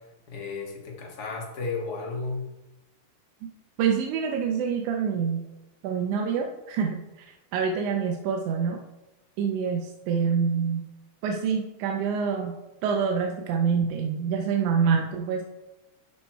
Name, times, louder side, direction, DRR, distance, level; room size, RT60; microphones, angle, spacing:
voice 1, 0.3-2.4, left 4 dB, 45° left, -1 dB, 1.3 m, -33 dB
voice 2, 3.8-5.4 5.8-8.8 9.4-10.8 11.2-15.4, right 6 dB, 75° right, 2 dB, 2.0 m, -26 dB
11.5 x 4.3 x 4.5 m, 1.0 s
omnidirectional pair, 3.7 m